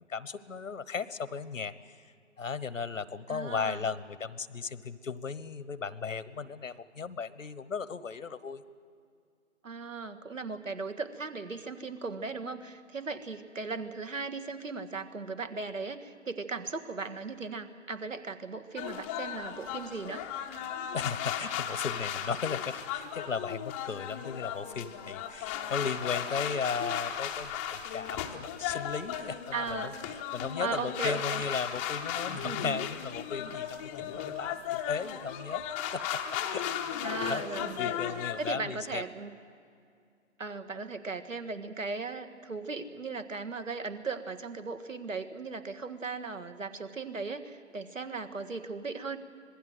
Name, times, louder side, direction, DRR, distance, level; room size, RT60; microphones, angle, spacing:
voice 1, 0.0-1.9 2.4-8.6 20.9-35.6 35.9-36.2 36.5-37.4 37.8-39.0, left 5 dB, 85° left, 16 dB, 1.2 m, -36 dB
voice 2, 3.3-3.9 9.6-20.3 29.5-29.9 30.6-31.4 32.4-32.8 37.0-38.0 38.4-39.3 40.4-49.2, right 4 dB, 90° right, 10 dB, 1.8 m, -37 dB
sound 1, 18.8-38.5, left 9 dB, 10° left, 0.6 m, -36 dB
26.0 x 19.5 x 7.8 m, 2.4 s
figure-of-eight pair, 140°, 38 cm